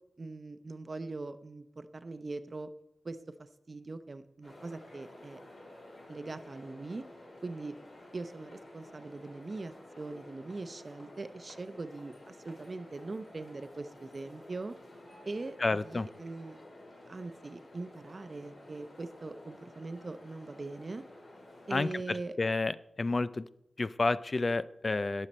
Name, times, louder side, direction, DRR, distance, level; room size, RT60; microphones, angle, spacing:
voice 1, 0.2-2.7 3.0-5.4 6.1-7.1 7.4-7.8 8.1-14.7 15.3-16.6 17.1-21.0 21.7-22.4, right 3 dB, 45° right, 11 dB, 0.7 m, -41 dB
Grand Central Station, 4.4-21.9, left 1 dB, 60° left, 4.3 m, -52 dB
voice 2, 15.6-16.1 21.7-21.9 22.4-22.7 23.0-23.4 23.8-25.3, left 3 dB, 40° left, 15 dB, 0.3 m, -29 dB
17.5 x 6.6 x 4.2 m, 0.82 s
wide cardioid pair, 80°, 0 cm